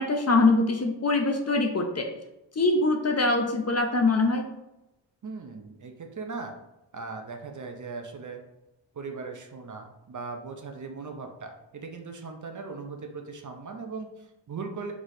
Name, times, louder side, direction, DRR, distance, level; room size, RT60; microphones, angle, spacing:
voice 1, 0.0-2.1 2.6-4.4, left 3 dB, 35° left, 3 dB, 0.5 m, -23 dB
voice 2, 5.2-6.5 6.9-8.4 8.9-14.9, right 4 dB, 40° right, 4 dB, 0.6 m, -39 dB
4.6 x 4.1 x 2.7 m, 0.92 s
wide cardioid pair, 115°, 46 cm